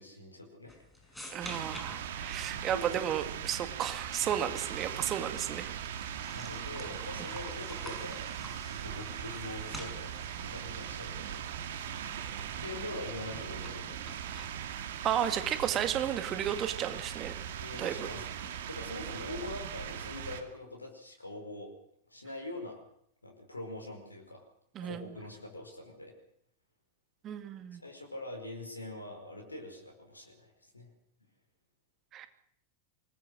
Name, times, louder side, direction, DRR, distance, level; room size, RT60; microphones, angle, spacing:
voice 1, 0.0-1.5 2.7-3.0 6.3-8.2 8.7-12.1 12.6-14.2 17.6-21.7 22.1-22.8 23.2-24.4 24.8-26.1 27.7-30.9, left 2 dB, 80° left, 2 dB, 4.9 m, -44 dB
sound 1, 0.7-14.7, left 1 dB, ahead, 6.0 m, -51 dB
voice 2, 1.3-5.8 15.0-17.4 17.8-18.1 24.8-25.1 27.2-27.8 32.1-32.3, right 10 dB, 30° right, 9 dB, 2.1 m, -33 dB
sound 2, 1.4-20.4, right 9 dB, 55° right, 2.4 m, -40 dB
25.0 x 20.0 x 6.5 m, 0.71 s
figure-of-eight pair, 90°, 0 cm